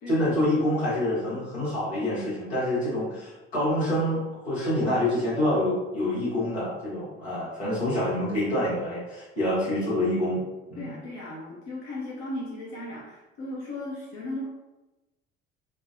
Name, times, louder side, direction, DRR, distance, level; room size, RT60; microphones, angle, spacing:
voice 1, 0.1-10.4 10.7-10.9, left 1 dB, 85° left, -9 dB, 1.2 m, -26 dB
voice 2, 10.8-14.5, left 1 dB, 60° left, -5 dB, 0.8 m, -36 dB
3.4 x 2.1 x 2.6 m, 1.1 s
figure-of-eight pair, 60°, 32 cm